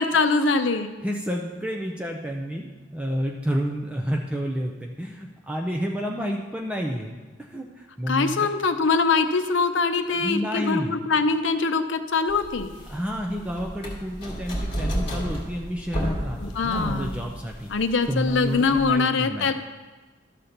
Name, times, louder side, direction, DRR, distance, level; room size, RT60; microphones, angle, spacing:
voice 1, 0.0-0.9 8.1-12.7 16.4-17.2 17.7-19.5, left 4 dB, 70° left, 8 dB, 0.6 m, -23 dB
voice 2, 1.0-7.1 7.4-8.3 10.1-11.0 12.9-17.7 18.1-19.5, equal, 5° right, 0 dB, 0.5 m, -30 dB
sound 1, 12.3-18.9, equal, 30° left, 2.4 m, -32 dB
12.5 x 4.3 x 6.6 m, 1.3 s
head